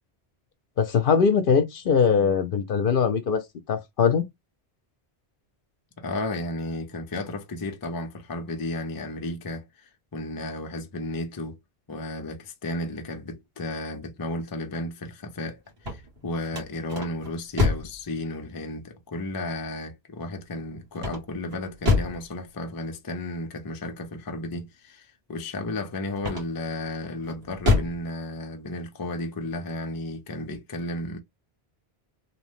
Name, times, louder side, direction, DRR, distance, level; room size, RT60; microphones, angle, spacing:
voice 1, 0.8-3.4 3.7-4.2, left 6 dB, 65° left, 0.7 m, -21 dB
voice 2, 6.0-11.6 11.9-31.2, left 1 dB, 30° left, 0.4 m, -33 dB
sound 1, 15.7-18.0 21.0-22.3 26.2-26.7 27.2-28.0, left 3 dB, 70° right, 1.5 m, -26 dB
2.9 x 2.1 x 3.0 m
omnidirectional pair, 1.1 m